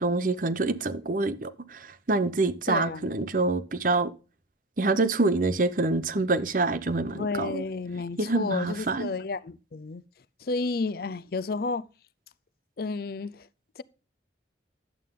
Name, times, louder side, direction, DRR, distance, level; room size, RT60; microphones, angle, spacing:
voice 1, 0.0-1.8 2.1-4.1 4.8-7.6 8.2-9.1, right 3 dB, 45° right, 0.8 m, -26 dB
voice 2, 2.7-3.1 7.1-10.0 10.4-11.9 12.8-13.5 13.8-13.9, left 3 dB, 55° left, 0.5 m, -31 dB
11.0 x 8.3 x 3.8 m
head